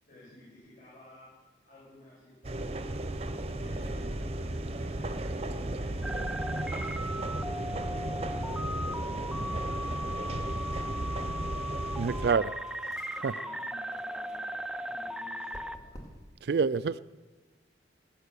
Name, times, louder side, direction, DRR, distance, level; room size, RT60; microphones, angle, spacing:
voice 1, 0.1-1.3 1.6-2.9 3.3-12.6 13.1-16.1, left 1 dB, 45° left, -8 dB, 6.3 m, -54 dB
sound 1, 2.4-12.3, right 1 dB, 35° right, 0.8 m, -34 dB
sound 2, 6.0-15.8, equal, 5° right, 0.5 m, -37 dB
voice 2, 12.0-12.5 13.2-13.3 16.4-17.0, right 5 dB, 60° right, 17 dB, 0.4 m, -27 dB
sound 3, 12.1-16.4, equal, 20° left, 2.3 m, -54 dB
19.5 x 9.0 x 6.7 m, 1.3 s
head